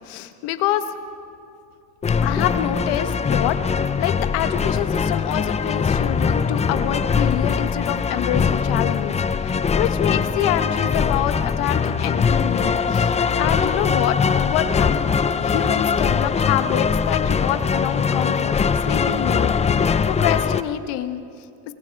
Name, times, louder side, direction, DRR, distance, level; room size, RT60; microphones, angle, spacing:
voice 1, 0.0-0.9 2.2-15.0 15.4-18.5 18.8-21.2, left 11 dB, 70° left, 10 dB, 1.4 m, -26 dB
sound 1, 2.0-20.6, left 6 dB, 15° left, 0.5 m, -21 dB
25.5 x 23.5 x 4.7 m, 2.5 s
supercardioid pair, 115°, 43 cm